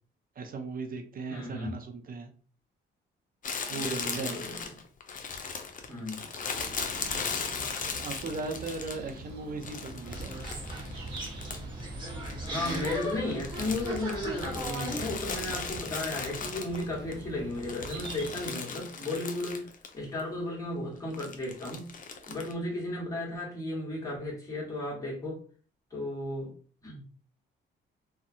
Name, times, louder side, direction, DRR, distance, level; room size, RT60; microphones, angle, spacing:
voice 1, 0.4-2.3 3.7-4.4 8.0-10.3, right 3 dB, 45° right, 5 dB, 0.6 m, -37 dB
voice 2, 1.3-1.8 3.7-4.6 5.9-6.3 12.4-19.7 19.9-21.9 22.3-25.4 25.9-26.5 26.8-27.0, left 2 dB, 15° left, -4 dB, 1.4 m, -34 dB
Crumpling crinkling, 3.4-9.2 9.6-11.8 12.1-17.1 17.5-19.9 20.2-20.3 21.1-22.5, left 5 dB, 45° left, 0.5 m, -37 dB
sound 1, 6.5-18.5, right 2 dB, 65° right, 1.1 m, -45 dB
sound 2, 10.0-15.8, right 1 dB, 25° right, 1.1 m, -38 dB
2.7 x 2.2 x 2.6 m, 0.41 s
cardioid pair, 90°, 20 cm